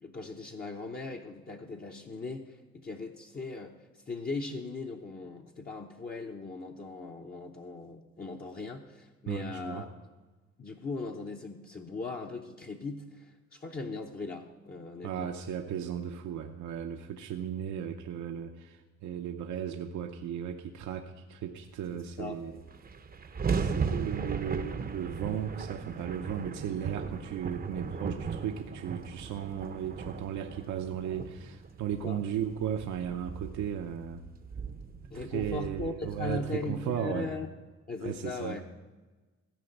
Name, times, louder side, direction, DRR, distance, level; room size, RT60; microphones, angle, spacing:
voice 1, 0.0-3.7 4.1-9.9 10.6-15.3 21.9-22.4 32.0-32.2 35.1-37.5 37.9-38.6, left 3 dB, 30° left, 0 dB, 0.9 m, -39 dB
voice 2, 9.3-9.8 15.0-22.6 23.5-34.2 35.1-37.3 38.0-38.6, right 9 dB, 70° right, 4 dB, 0.8 m, -36 dB
sound 1, 22.2-22.3 22.5-36.8, right 5 dB, 30° right, 0.7 m, -37 dB
15.0 x 5.1 x 7.9 m, 1.2 s
cardioid pair, 90°, 30 cm